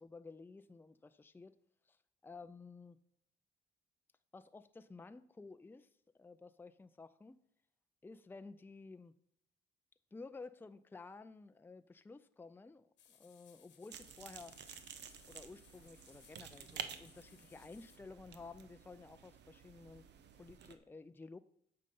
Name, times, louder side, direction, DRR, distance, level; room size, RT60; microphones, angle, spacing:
voice 1, 0.0-1.6 1.9-2.0 2.2-3.0 4.3-5.9 6.2-7.4 8.0-9.1 10.1-14.6 15.3-20.0 20.4-21.4, left 3 dB, 10° left, 11 dB, 0.4 m, -53 dB
sound 1, 13.0-18.0, left 9 dB, 80° left, 1.3 m, -66 dB
sound 2, 13.9-20.8, right 8 dB, 75° right, 0.8 m, -51 dB
8.3 x 5.7 x 5.4 m, 0.75 s
cardioid pair, 85°, 18 cm